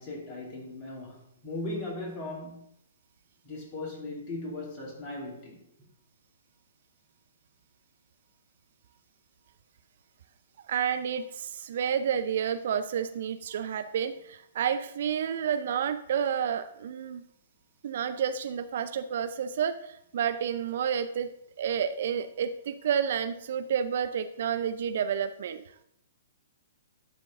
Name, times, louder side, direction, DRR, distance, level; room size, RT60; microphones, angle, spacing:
voice 1, 0.0-2.6 3.4-5.7, left 2 dB, 30° left, -3 dB, 2.7 m, -38 dB
voice 2, 10.7-17.2 17.8-21.3 21.6-25.6, right 8 dB, 55° right, 11 dB, 0.4 m, -30 dB
11.0 x 3.7 x 3.7 m, 0.74 s
figure-of-eight pair, 120°, 0 cm